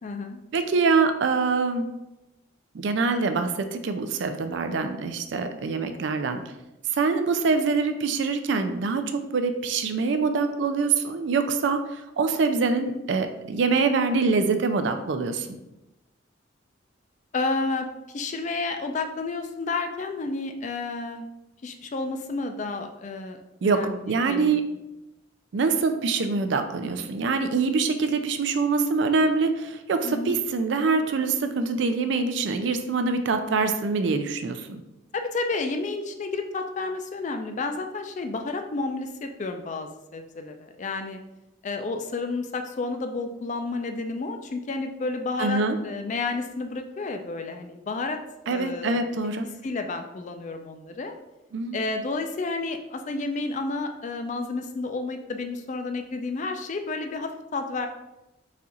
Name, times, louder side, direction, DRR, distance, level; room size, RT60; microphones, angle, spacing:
voice 1, 0.0-0.4 17.3-21.3 21.6-23.4 23.6-24.5 30.0-30.4 35.1-41.2 41.6-49.0 49.6-51.1 51.7-57.9, left 3 dB, 40° left, 6 dB, 0.4 m, -31 dB
voice 2, 0.5-1.9 2.7-6.4 6.9-11.8 12.2-15.5 23.6-24.6 25.5-34.8 45.4-45.8 48.5-49.5 51.5-51.8, right 4 dB, 65° right, 8 dB, 0.4 m, -24 dB
4.2 x 2.4 x 3.9 m, 0.94 s
head